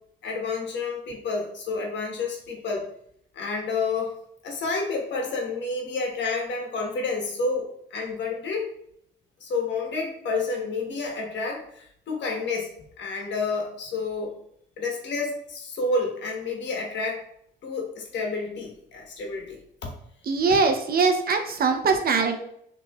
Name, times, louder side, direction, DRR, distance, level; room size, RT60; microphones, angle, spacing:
voice 1, 0.2-2.9 3.3-4.1 4.4-8.7 9.4-12.7 13.0-14.3 14.8-17.2 17.6-19.9, left 3 dB, 65° left, 0 dB, 1.2 m, -29 dB
voice 2, 20.3-22.4, right 4 dB, 50° right, 6 dB, 0.7 m, -22 dB
6.1 x 3.0 x 2.3 m, 0.70 s
cardioid pair, 90°, 20 cm